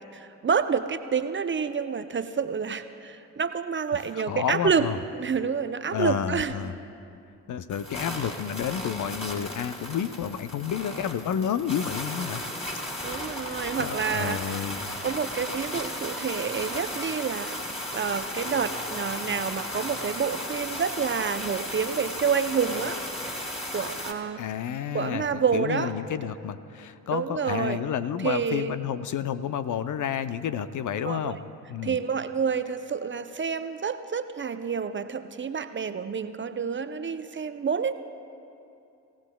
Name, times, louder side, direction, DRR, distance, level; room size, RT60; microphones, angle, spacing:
voice 1, 0.1-4.9 5.1-6.7 13.0-14.6 15.0-17.6 17.9-23.0 23.7-24.4 24.9-25.9 27.1-27.8 28.2-28.8 31.0-31.4 31.8-37.9, right 6 dB, 30° right, 10 dB, 0.7 m, -28 dB
voice 2, 4.1-5.0 5.9-6.8 7.5-12.4 13.5-14.9 24.4-31.4 31.7-32.0, left 8 dB, 45° left, 12 dB, 0.7 m, -30 dB
sound 1, 7.7-24.1, left 1 dB, 15° left, 3.2 m, -35 dB
25.0 x 16.5 x 2.3 m, 2.6 s
figure-of-eight pair, 40°, 42 cm